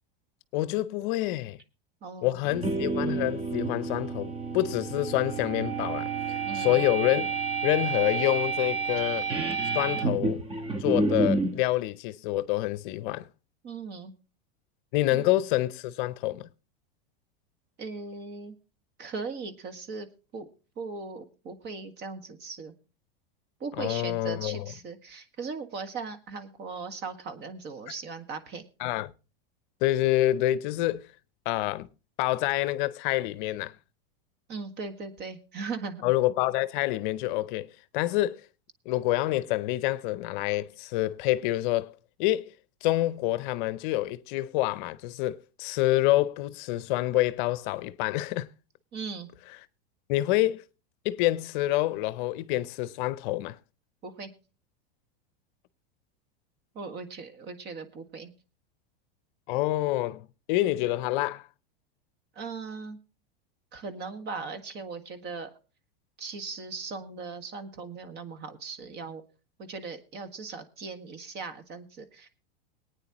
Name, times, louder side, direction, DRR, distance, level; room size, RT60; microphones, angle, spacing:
voice 1, 0.5-1.6 2.2-7.4 7.6-9.3 9.7-10.4 10.8-13.3 14.9-16.5 23.8-24.6 28.8-29.1 29.8-31.1 31.5-31.9 32.2-33.7 36.0-38.4 38.9-41.9 42.2-42.5 42.8-48.5 50.1-50.6 51.0-53.6 59.5-61.5, left 16 dB, 55° left, 0.6 m, -27 dB
voice 2, 2.0-2.4 6.4-6.8 13.6-14.1 15.1-15.2 17.8-18.6 19.0-20.1 20.3-20.5 20.8-22.7 23.6-28.6 34.5-36.0 48.9-49.3 54.0-54.3 56.8-58.3 62.4-63.0 63.7-65.5 66.2-69.2 69.6-72.3, right 4 dB, 35° right, 1.6 m, -38 dB
sound 1, 2.4-11.6, right 4 dB, 20° right, 1.2 m, -29 dB
21.5 x 9.2 x 2.9 m
supercardioid pair, 130°, 30 cm